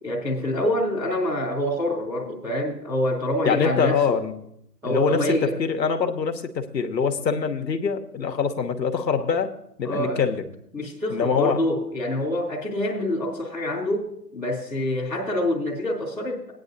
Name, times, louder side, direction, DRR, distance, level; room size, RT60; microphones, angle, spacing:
voice 1, 0.0-4.2 4.8-5.6 9.8-10.3 10.7-16.5, left 1 dB, 5° right, -9 dB, 1.0 m, -26 dB
voice 2, 3.5-4.4 4.8-9.5 9.8-10.5 11.1-11.6, left 6 dB, 85° left, 6 dB, 1.1 m, -24 dB
17.5 x 9.5 x 2.6 m, 0.77 s
hypercardioid pair, 155°, 49 cm